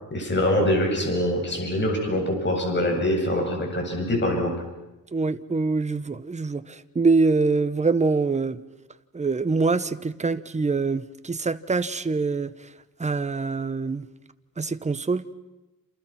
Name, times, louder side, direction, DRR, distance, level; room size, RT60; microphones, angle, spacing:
voice 1, 0.1-4.5, left 1 dB, 30° left, 7.6 m, -24 dB
voice 2, 5.1-8.6 9.1-12.5 13.0-14.0 14.6-15.3, right 4 dB, 20° right, 1.1 m, -24 dB
28.5 x 28.0 x 6.0 m
cardioid pair, 115°, 34 cm